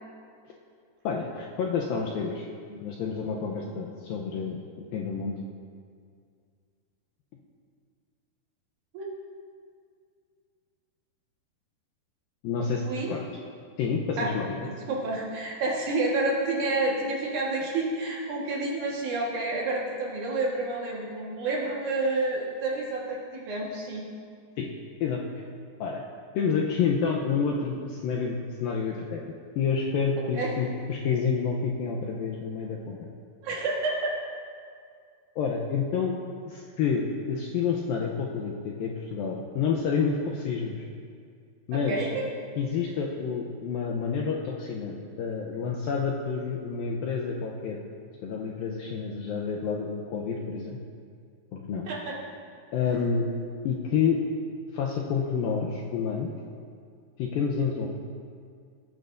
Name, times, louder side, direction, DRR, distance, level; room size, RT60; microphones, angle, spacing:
voice 1, 1.0-2.5 2.8-4.6 4.9-5.4 12.4-12.8 13.1-13.2 13.8-14.7 24.6-24.7 25.0-25.4 25.8-26.0 26.3-29.2 29.6-33.1 35.4-36.1 36.5-40.8 41.7-42.1 42.6-47.8 48.2-50.8 51.5-51.8 52.7-53.3 53.6-54.2 54.7-56.3 57.2-57.9, left 6 dB, 80° left, -2 dB, 2.2 m, -29 dB
voice 2, 14.6-24.0 30.3-30.5 33.4-34.2 41.7-42.2 51.9-52.2, right 2 dB, 60° right, -3 dB, 2.4 m, -29 dB
20.0 x 9.0 x 2.6 m, 2.2 s
omnidirectional pair, 4.8 m